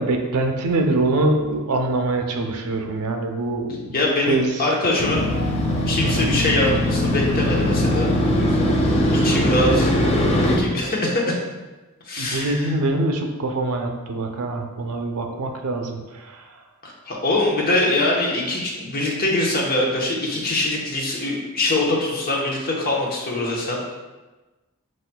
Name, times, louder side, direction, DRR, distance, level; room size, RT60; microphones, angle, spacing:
voice 1, 0.0-4.6 6.0-6.3 12.2-16.5, right 2 dB, 90° right, 4 dB, 0.5 m, -24 dB
voice 2, 3.9-5.3 5.9-8.8 9.2-9.9 10.6-11.4 12.1-12.7 16.8-23.8, left 2 dB, 45° left, -2 dB, 0.9 m, -23 dB
Motorcycle, 5.0-10.6, left 1 dB, 30° left, 0.5 m, -20 dB
4.8 x 4.1 x 2.2 m, 1.2 s
head